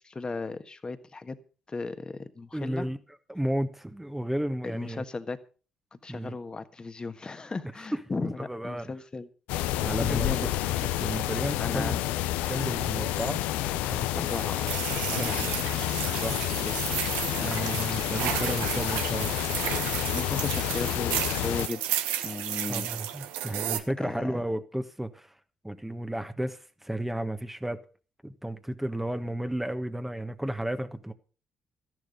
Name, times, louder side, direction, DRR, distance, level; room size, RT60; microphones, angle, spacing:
voice 1, 0.0-1.4 1.7-2.9 4.6-5.4 5.9-9.3 9.7-10.5 11.6-12.0 14.2-14.7 15.1-15.4 16.6-16.9 17.4-17.5 17.8-18.3 20.1-21.8 22.2-22.9 24.0-24.4, left 3 dB, 30° left, 1.5 m, -36 dB
voice 2, 2.5-3.0 3.3-5.0 6.1-6.4 8.2-8.9 9.8-10.5 10.8-12.0 12.5-13.4 13.7-14.2 15.2-15.5 16.2-16.4 17.3-19.7 22.7-25.3 25.6-27.8 28.2-31.1, right 1 dB, 10° right, 1.3 m, -33 dB
sound 1, 9.5-21.7, left 14 dB, 80° left, 0.6 m, -29 dB
sound 2, 14.2-23.8, right 11 dB, 80° right, 1.0 m, -33 dB
13.5 x 11.0 x 5.2 m
hypercardioid pair, 50°, 3 cm